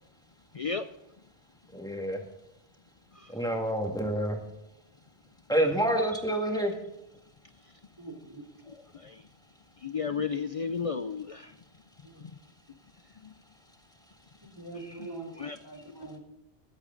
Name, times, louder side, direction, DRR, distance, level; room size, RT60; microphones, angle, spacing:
voice 1, 0.5-0.8 6.1-6.2 8.7-8.8 9.0-9.2 9.8-11.5 15.4-15.6, left 5 dB, 50° left, 11 dB, 0.4 m, -32 dB
voice 2, 1.7-2.2 3.3-4.4 5.5-6.7, right 1 dB, 5° left, 2 dB, 1.9 m, -28 dB
voice 3, 8.0-8.4 12.0-12.2 14.4-16.2, right 3 dB, 25° right, -1 dB, 3.5 m, -44 dB
21.5 x 8.2 x 3.9 m, 0.87 s
omnidirectional pair, 1.1 m